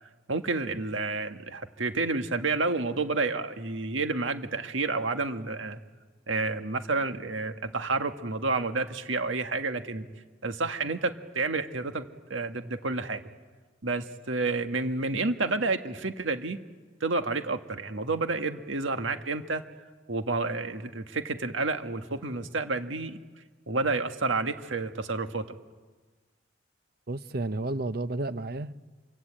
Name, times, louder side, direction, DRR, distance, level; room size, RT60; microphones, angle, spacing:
voice 1, 0.3-5.8 6.3-10.1 10.4-12.0 12.3-13.2 13.8-16.6 17.0-19.6 20.1-23.2 23.7-25.4, right 3 dB, 80° right, 1.6 m, -30 dB
voice 2, 27.1-28.8, right 2 dB, 50° right, 0.8 m, -32 dB
27.0 x 24.0 x 8.9 m
head